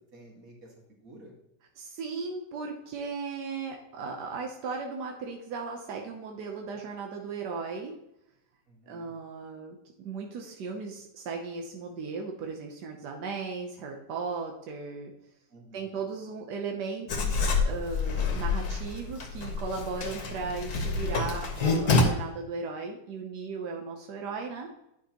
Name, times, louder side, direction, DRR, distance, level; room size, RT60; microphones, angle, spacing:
voice 1, 0.1-1.3 8.7-9.1 15.5-16.0, right 2 dB, 55° right, -2 dB, 2.1 m, -52 dB
voice 2, 1.8-7.9 8.9-15.1 15.7-24.8, right 4 dB, 90° right, 1 dB, 1.4 m, -36 dB
Writing, 17.1-22.0, left 4 dB, 70° left, 1.5 m, -28 dB
9.1 x 5.6 x 2.9 m, 0.82 s
omnidirectional pair, 1.7 m